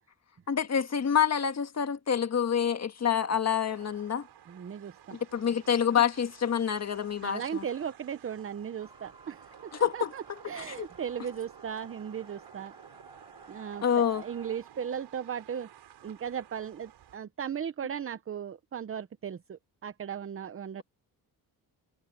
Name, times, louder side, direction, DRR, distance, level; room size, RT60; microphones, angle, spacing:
voice 1, 0.5-4.2 5.1-7.6 9.8-10.1 10.6-10.9 13.8-14.2, left 8 dB, 40° left, 1.7 m, -27 dB
sound 1, 3.6-17.2, right 11 dB, 80° right, 5.6 m, -54 dB
voice 2, 4.5-5.2 7.2-12.7 13.5-15.7 16.0-20.8, right 8 dB, 35° right, 0.8 m, -37 dB
sound 2, 8.8-14.6, right 2 dB, 15° right, 6.6 m, -54 dB
cardioid pair, 120°, 39 cm